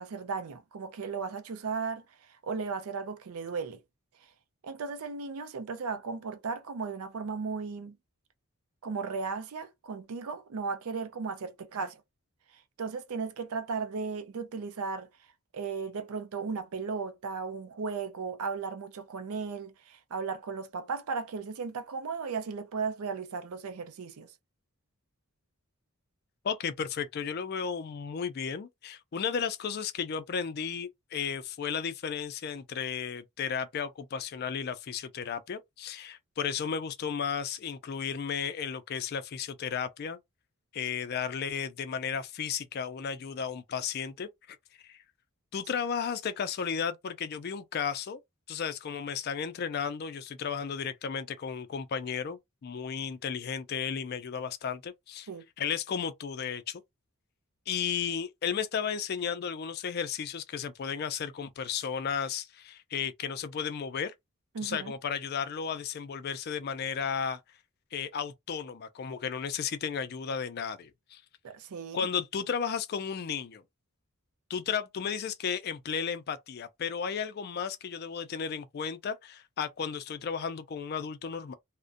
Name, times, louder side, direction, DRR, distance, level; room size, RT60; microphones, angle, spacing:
voice 1, 0.0-2.0 2.4-3.8 4.6-8.0 8.8-12.0 12.8-15.1 15.5-24.3 55.3-55.4 64.5-64.9 71.4-72.1, right 5 dB, 80° right, 0.5 m, -36 dB
voice 2, 26.4-40.2 40.7-44.6 44.8-45.0 45.5-48.2 48.5-55.3 55.6-56.8 57.7-64.1 64.6-67.4 67.9-71.2 71.9-73.6 74.5-81.5, left 7 dB, 45° left, 0.3 m, -34 dB
2.4 x 2.1 x 2.5 m
head